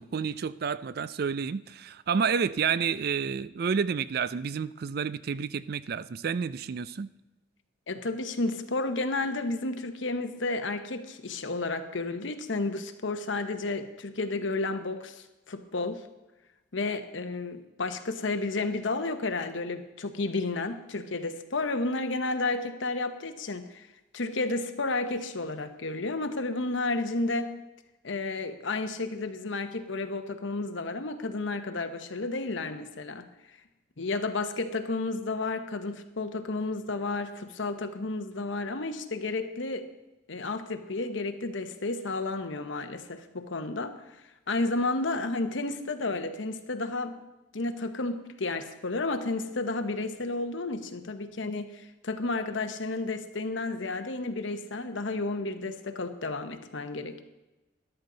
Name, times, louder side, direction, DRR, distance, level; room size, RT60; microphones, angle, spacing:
voice 1, 0.0-7.1, right 6 dB, 50° right, 16 dB, 0.4 m, -30 dB
voice 2, 7.9-16.0 16.7-23.9 24.1-27.5 28.0-33.3 34.0-39.9 40.3-44.0 44.5-47.2 47.5-57.2, left 3 dB, 75° left, 8 dB, 1.0 m, -32 dB
13.5 x 12.0 x 3.9 m, 1.0 s
head